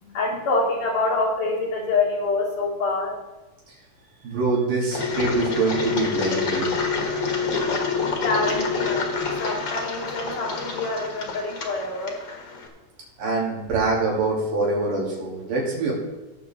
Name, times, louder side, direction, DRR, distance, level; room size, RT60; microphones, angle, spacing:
voice 1, 0.0-3.1 8.1-9.1 9.4-12.2, left 3 dB, 75° left, -5 dB, 3.1 m, -26 dB
voice 2, 4.2-6.7 13.2-15.9, right 3 dB, 90° right, -4 dB, 4.7 m, -24 dB
Engine, 4.9-12.7, left 4 dB, 45° left, 1.8 m, -27 dB
17.0 x 7.2 x 3.7 m, 1.1 s
omnidirectional pair, 3.7 m